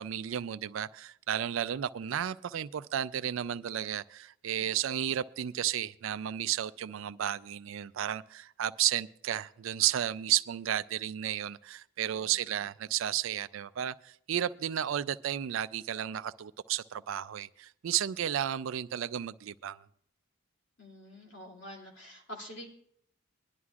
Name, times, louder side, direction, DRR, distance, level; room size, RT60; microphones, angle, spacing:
voice 1, 0.0-19.8, right 10 dB, 70° right, 0.4 m, -33 dB
voice 2, 20.8-22.7, equal, 60° left, 2.6 m, -47 dB
21.0 x 11.0 x 2.4 m
head